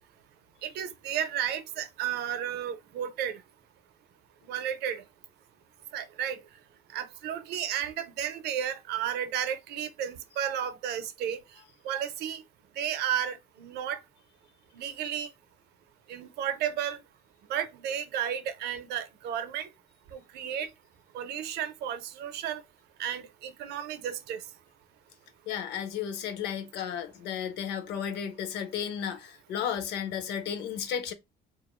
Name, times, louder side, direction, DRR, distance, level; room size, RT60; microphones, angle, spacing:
voice 1, 0.6-3.4 4.5-5.0 5.9-6.4 6.9-11.4 11.8-12.4 12.8-14.0 14.7-15.3 16.1-17.0 17.5-19.7 20.1-20.7 21.1-22.6 23.0-24.4, right 9 dB, 75° right, 0.5 m, -33 dB
voice 2, 25.5-31.1, left 8 dB, 85° left, 0.6 m, -33 dB
3.0 x 2.4 x 2.2 m
cardioid pair, 110°, 17 cm